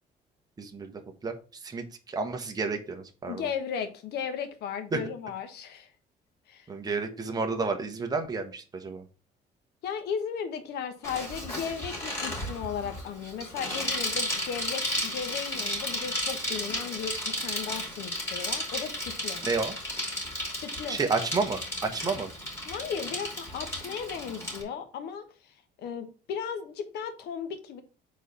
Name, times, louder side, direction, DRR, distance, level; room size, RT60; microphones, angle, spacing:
voice 1, 0.6-0.9 1.2-1.3 1.6-3.5 4.9-5.0 6.7-9.0 19.4-19.7 20.9-22.3, right 4 dB, 20° right, 1.1 m, -30 dB
voice 2, 3.3-5.9 6.5-6.7 9.8-19.4 20.5-21.0 22.6-27.8, left 7 dB, 75° left, 1.2 m, -36 dB
Bicycle, 11.0-24.6, left 1 dB, 15° left, 3.0 m, -34 dB
4.8 x 4.1 x 5.7 m
cardioid pair, 110°, 17 cm